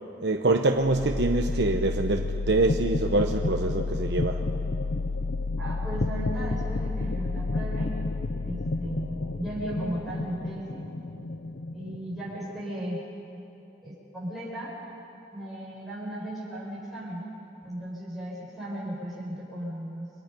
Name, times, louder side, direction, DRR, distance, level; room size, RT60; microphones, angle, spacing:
voice 1, 0.2-4.4, right 2 dB, 80° right, 3 dB, 1.0 m, -25 dB
sound 1, 0.8-12.7, left 3 dB, 70° left, 0.7 m, -30 dB
voice 2, 5.6-7.9 8.4-10.8 11.7-13.0 13.8-14.7 15.3-17.2 17.6-20.1, right 1 dB, ahead, -9 dB, 6.4 m, -36 dB
30.0 x 24.5 x 5.4 m, 2.8 s
head